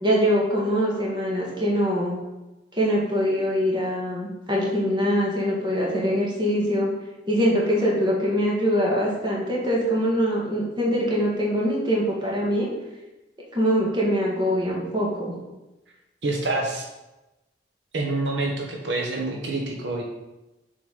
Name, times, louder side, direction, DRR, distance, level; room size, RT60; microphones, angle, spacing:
voice 1, 0.0-2.2 2.7-6.9 7.3-12.7 13.5-15.3, equal, 25° right, -4 dB, 1.9 m, -23 dB
voice 2, 16.2-16.9 17.9-20.0, right 2 dB, 75° right, 0 dB, 1.1 m, -27 dB
7.2 x 4.6 x 5.0 m, 1.0 s
head